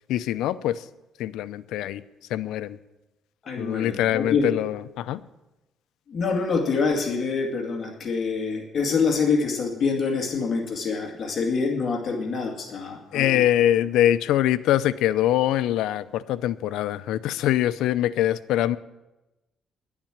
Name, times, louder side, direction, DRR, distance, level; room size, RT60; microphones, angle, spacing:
voice 1, 0.1-0.8 1.2-2.0 2.3-2.8 3.6-5.2 13.1-18.8, left 12 dB, 90° left, 15 dB, 0.6 m, -23 dB
voice 2, 3.4-4.5 6.1-13.4, left 4 dB, 45° left, 2 dB, 2.2 m, -26 dB
11.0 x 8.8 x 8.9 m, 0.99 s
cardioid pair, 110°, 0 cm